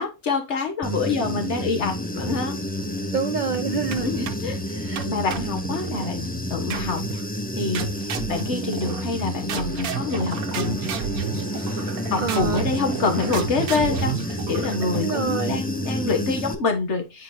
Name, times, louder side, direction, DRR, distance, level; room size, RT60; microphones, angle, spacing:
voice 1, 0.0-2.6 4.0-4.7 5.1-7.3 7.5-10.8 12.1-17.2, left 4 dB, 50° left, 5 dB, 1.6 m, -26 dB
Human voice / Buzz, 0.8-16.5, equal, 10° left, 0.4 m, -30 dB
voice 2, 3.1-4.1 4.8-5.0 11.5-12.6 13.2-13.3 14.9-15.6, right 5 dB, 60° right, 8 dB, 0.4 m, -28 dB
sound 1, 3.9-4.5 5.0-6.1 6.7-7.2 7.7-9.2 9.5-15.2, right 8 dB, 85° right, 1.3 m, -32 dB
Bowed string instrument, 9.5-15.2, right 6 dB, 30° right, 1.1 m, -39 dB
8.0 x 4.4 x 2.7 m, 0.25 s
omnidirectional pair, 1.5 m